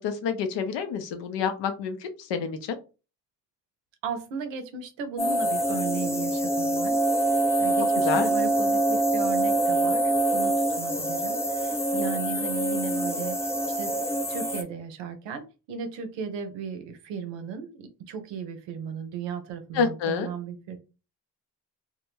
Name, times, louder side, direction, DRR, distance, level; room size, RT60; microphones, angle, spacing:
voice 1, 0.0-2.8 8.0-8.3 19.7-20.3, left 6 dB, 75° left, 8 dB, 0.6 m, -28 dB
voice 2, 4.0-7.0 7.3-13.4 13.7-14.0 14.3-20.8, right 6 dB, 85° right, 8 dB, 0.6 m, -36 dB
sound 1, 5.2-14.6, right 1 dB, 5° left, 0.4 m, -25 dB
2.2 x 2.1 x 3.0 m, 0.32 s
supercardioid pair, 50°, 43 cm